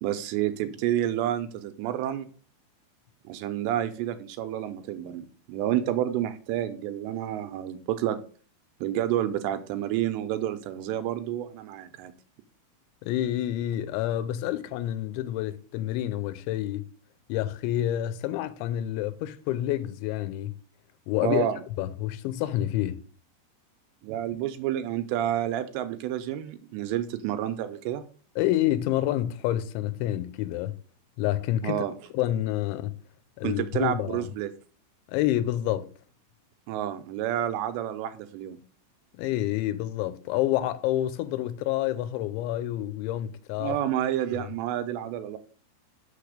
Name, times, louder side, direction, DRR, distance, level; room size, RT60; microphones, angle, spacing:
voice 1, 0.0-2.3 3.3-8.2 8.8-12.1 21.2-21.6 24.0-28.0 31.6-31.9 33.4-34.5 36.7-38.6 43.6-45.4, right 11 dB, 80° right, 2.8 m, -29 dB
voice 2, 13.0-16.8 17.3-20.5 21.1-21.5 21.8-23.0 28.4-30.8 31.2-31.8 32.1-33.0 33.4-34.2 35.1-35.9 39.2-43.8 44.3-44.5, left 13 dB, 85° left, 3.1 m, -28 dB
6.8 x 6.6 x 5.0 m
omnidirectional pair, 5.2 m